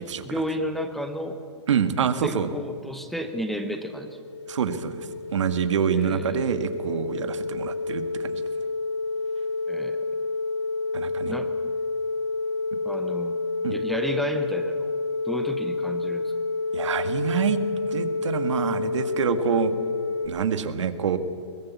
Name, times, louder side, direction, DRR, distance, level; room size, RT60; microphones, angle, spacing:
voice 1, 0.0-1.4 2.2-4.2 5.9-6.5 9.7-10.1 11.3-11.5 12.8-13.4 13.7-15.0 15.2-16.3, equal, ahead, 7 dB, 0.9 m, -32 dB
voice 2, 1.7-2.5 4.5-8.4 10.9-11.4 12.7-12.8 13.6-13.8 16.7-17.6 17.9-19.7 20.3-21.2, right 7 dB, 85° right, 10 dB, 1.8 m, -26 dB
sound 1, 3.3-20.3, left 3 dB, 80° left, 2.4 m, -29 dB
22.0 x 18.5 x 8.3 m, 2.3 s
hypercardioid pair, 165°, 15 cm